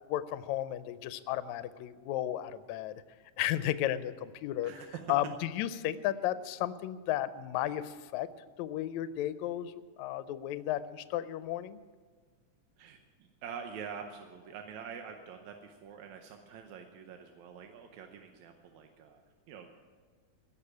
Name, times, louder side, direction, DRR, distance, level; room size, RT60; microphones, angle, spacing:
voice 1, 0.1-3.0 3.4-4.7 5.1-8.3 8.6-9.7 10.0-11.8, left 12 dB, 80° left, 13 dB, 1.8 m, -34 dB
voice 2, 4.6-5.0 12.8-19.2 19.5-19.7, right 7 dB, 75° right, 4 dB, 2.1 m, -46 dB
16.5 x 6.8 x 9.6 m, 1.5 s
omnidirectional pair, 3.5 m